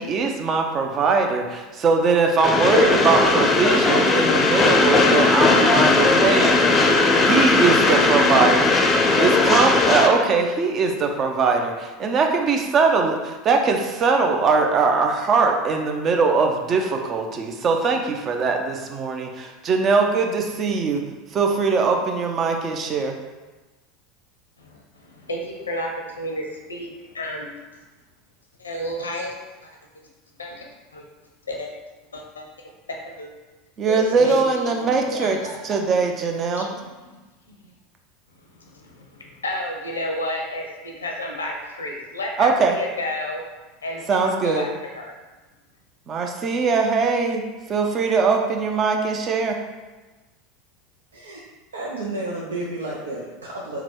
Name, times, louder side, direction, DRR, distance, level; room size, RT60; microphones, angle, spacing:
voice 1, 0.0-6.6 7.2-8.8 9.2-21.0 21.3-23.1 33.8-35.4 35.6-36.7 42.4-42.8 44.1-44.6 46.1-47.4 47.7-49.6, right 4 dB, 35° right, 3 dB, 0.6 m, -21 dB
Train, 2.4-10.1, left 3 dB, 25° left, 0.5 m, -18 dB
voice 2, 24.6-27.6 28.6-29.3 29.6-29.8 30.4-30.6 30.9-31.0 31.5-31.7 32.1-33.3 33.9-35.8 36.5-36.7 37.0-37.2 37.5-37.6 38.5-43.4 43.8-45.1, left 1 dB, 85° left, 1 dB, 0.6 m, -32 dB
voice 3, 51.1-51.4 51.7-53.8, right 2 dB, 80° right, -3 dB, 0.5 m, -31 dB
3.9 x 2.2 x 4.4 m, 1.2 s
figure-of-eight pair, 80°, 0 cm